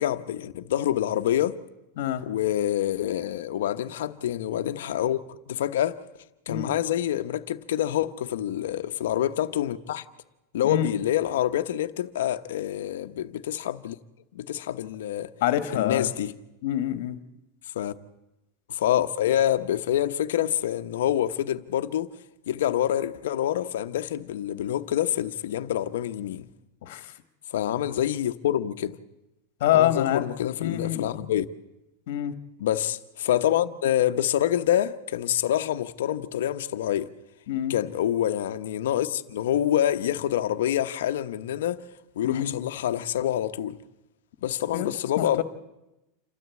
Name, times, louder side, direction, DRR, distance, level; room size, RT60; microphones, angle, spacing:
voice 1, 0.0-1.6 2.2-6.0 6.5-10.0 10.5-14.0 14.3-15.3 15.7-16.3 17.7-17.9 18.7-22.1 22.5-26.5 27.5-29.0 29.7-31.5 32.6-37.1 37.7-41.8 42.2-43.8 44.4-45.4, left 11 dB, 85° left, 1.0 m, -26 dB
voice 2, 15.4-16.1 16.6-17.2 26.8-27.1 29.6-30.3 30.6-31.1 32.1-32.3 37.5-37.8 42.2-42.5 44.7-44.9 45.2-45.4, left 12 dB, 65° left, 1.6 m, -26 dB
28.0 x 13.0 x 8.4 m
supercardioid pair, 155°, 0 cm